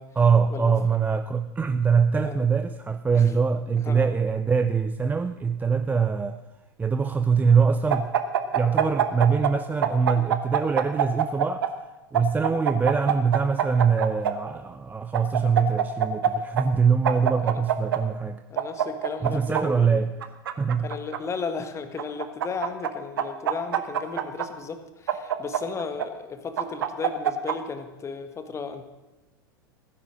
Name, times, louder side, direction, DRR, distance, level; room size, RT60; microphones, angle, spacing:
voice 1, 0.2-6.4 6.8-8.1 8.5-11.8 12.1-18.4 19.2-20.1 20.6-20.9, right 6 dB, 15° right, 0.5 m, -23 dB
sound 1, 7.9-9.5 9.8-11.7 12.1-14.3 15.1-16.3 16.6-16.7 17.0-18.0 18.6-19.6 20.2-21.2 22.0-22.9 23.2-24.5 25.1-26.1 26.6-27.5, right 10 dB, 70° right, 1.1 m, -24 dB
voice 2, 18.5-20.1 20.8-28.8, left 5 dB, 25° left, 1.6 m, -35 dB
15.5 x 10.0 x 6.3 m
figure-of-eight pair, 85°, 12 cm